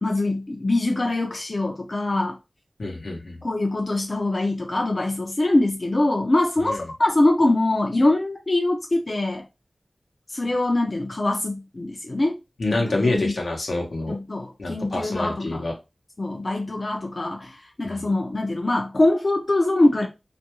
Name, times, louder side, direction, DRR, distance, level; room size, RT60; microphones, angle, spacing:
voice 1, 0.0-2.4 3.4-9.4 10.3-12.4 12.9-13.4 14.1-15.6 16.2-20.1, left 2 dB, 50° left, 0.5 m, -23 dB
voice 2, 2.8-3.4 6.6-6.8 12.6-14.1 14.6-15.7 17.8-18.1, left 2 dB, 85° left, 0.8 m, -27 dB
2.5 x 2.2 x 2.9 m
cardioid pair, 40°, 0 cm